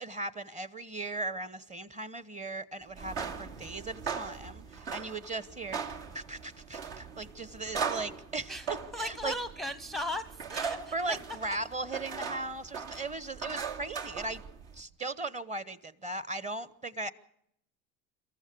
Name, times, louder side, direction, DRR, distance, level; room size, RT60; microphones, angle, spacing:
voice 1, 0.0-5.8 6.1-9.3 10.9-14.4 14.7-17.1, right 2 dB, 15° right, 18 dB, 1.0 m, -38 dB
sound 1, 2.9-14.8, right 6 dB, 65° right, 2.7 m, -39 dB
voice 2, 8.5-11.2, left 1 dB, ahead, 11 dB, 0.7 m, -37 dB
27.0 x 14.5 x 6.9 m, 0.76 s
hypercardioid pair, 70°, 41 cm